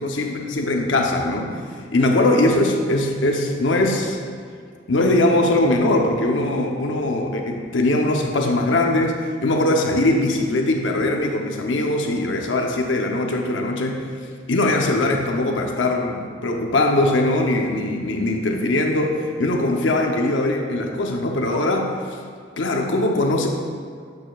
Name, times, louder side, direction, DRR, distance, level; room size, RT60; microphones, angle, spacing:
voice 1, 0.0-1.5 1.9-4.2 4.9-14.0 14.5-21.9 22.6-23.5, left 2 dB, 85° left, 2 dB, 0.7 m, -21 dB
8.5 x 6.6 x 2.4 m, 2.1 s
head